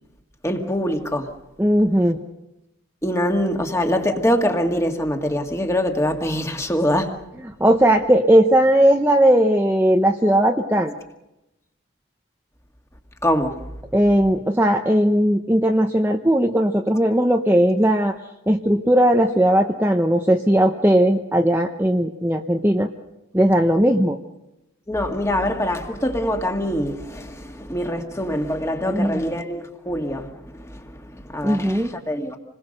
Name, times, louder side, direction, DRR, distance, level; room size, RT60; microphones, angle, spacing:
voice 1, 0.4-1.3 3.0-7.2 13.2-13.6 24.9-32.4, left 1 dB, 15° left, 1.9 m, -24 dB
voice 2, 1.6-2.2 7.6-10.9 13.9-18.1 18.5-22.9 23.3-24.2 28.9-29.2 31.4-31.9, right 1 dB, 10° right, 0.8 m, -18 dB
28.0 x 21.0 x 6.6 m
head